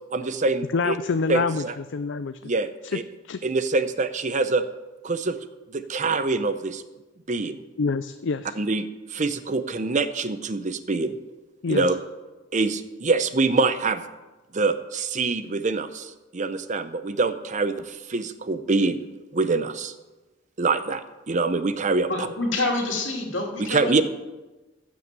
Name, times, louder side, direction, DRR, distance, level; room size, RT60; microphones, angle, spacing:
voice 1, 0.1-1.0 1.3-1.7 2.4-3.0 3.4-4.6 5.0-5.4 5.7-6.8 7.3-7.6 8.5-11.2 11.7-12.0 12.5-14.0 14.5-19.0 19.3-19.9 20.6-22.3 23.6-24.0, right 3 dB, 40° right, 11 dB, 0.7 m, -25 dB
voice 2, 0.7-1.6 1.9-2.4 2.9-3.0 3.3-3.4 7.8-8.5 11.6-11.8, left 4 dB, 70° left, 11 dB, 0.5 m, -26 dB
voice 3, 22.1-24.0, left 2 dB, 85° left, 1 dB, 2.6 m, -27 dB
15.0 x 6.2 x 7.5 m, 1.1 s
head